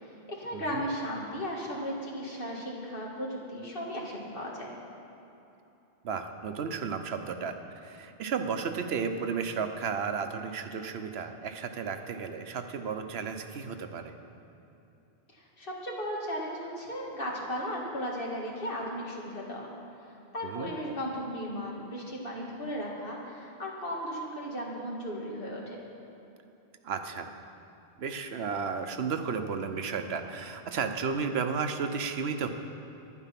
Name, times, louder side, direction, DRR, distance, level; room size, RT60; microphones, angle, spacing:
voice 1, 0.0-4.7 15.3-19.7 20.3-25.8, equal, 60° left, -3 dB, 2.1 m, -36 dB
voice 2, 0.5-0.8 6.0-7.6 7.8-14.1 20.4-20.7 26.8-27.3 28.0-32.5, right 5 dB, 80° right, 7 dB, 1.0 m, -33 dB
11.0 x 10.0 x 5.9 m, 3.0 s
omnidirectional pair, 1.1 m